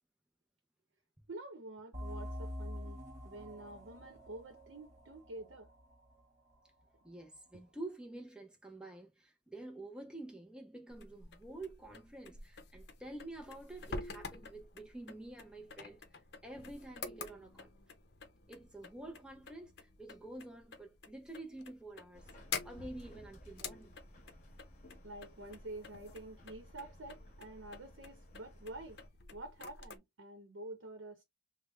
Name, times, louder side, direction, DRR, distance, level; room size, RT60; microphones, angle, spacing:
voice 1, 1.3-3.0 3.2-5.7 25.0-29.0 29.3-31.2, right 2 dB, 90° right, 0.8 m, -48 dB
sound 1, 1.9-7.2, left 1 dB, 40° right, 1.0 m, -46 dB
voice 2, 7.0-17.7 18.5-22.3 22.6-24.0, right 2 dB, 5° right, 0.4 m, -49 dB
sound 2, 10.9-30.0, left 4 dB, 60° left, 0.6 m, -49 dB
Subway metro underground, 22.1-29.1, equal, 40° left, 0.9 m, -56 dB
3.4 x 2.1 x 3.0 m
head